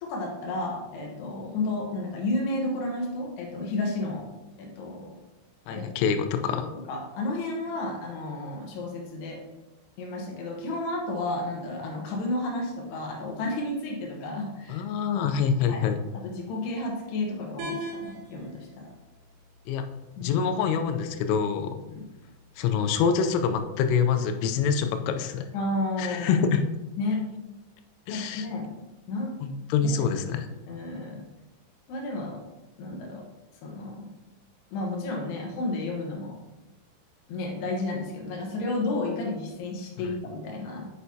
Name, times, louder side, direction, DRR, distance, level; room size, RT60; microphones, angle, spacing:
voice 1, 0.0-4.3 4.6-5.2 5.7-5.9 6.6-9.4 10.0-14.8 15.7-15.8 16.1-18.8 20.2-20.3 21.9-22.1 25.5-26.5 27.0-27.2 28.1-28.7 29.1-29.3 29.8-30.0 30.7-31.2 31.9-32.4 32.8-33.2 33.6-34.1 34.7-36.4 37.3-40.9, left 2 dB, 70° left, 0 dB, 2.7 m, -32 dB
voice 2, 5.7-6.7 14.7-16.0 19.7-19.9 20.2-21.8 22.6-25.5 26.0-26.6 28.1-28.5 29.4-30.5, left 6 dB, 85° left, 8 dB, 3.2 m, -25 dB
sound 1, 17.6-23.6, right 1 dB, 80° right, 3.5 m, -44 dB
7.9 x 6.5 x 2.7 m, 1.1 s
omnidirectional pair, 5.8 m